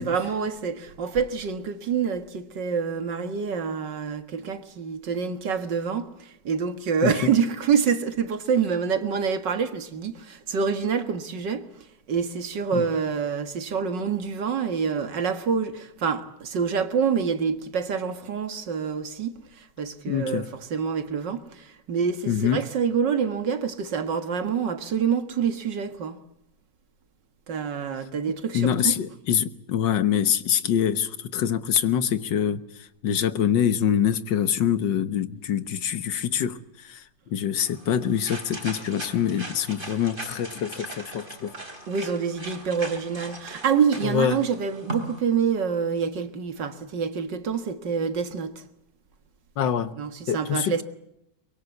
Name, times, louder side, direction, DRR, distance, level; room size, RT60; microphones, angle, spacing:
voice 1, 0.0-11.6 12.1-26.2 27.5-28.9 41.9-48.6 50.0-50.8, right 6 dB, 80° right, 2.4 m, -27 dB
voice 2, 20.1-20.5 22.3-22.6 28.5-36.6 36.8-37.0 37.3-41.5 44.0-44.4 49.6-49.9 50.3-50.8, left 9 dB, 85° left, 1.9 m, -25 dB
sound 1, 37.6-45.2, right 2 dB, 30° right, 3.7 m, -39 dB
24.0 x 23.0 x 8.4 m
omnidirectional pair, 1.9 m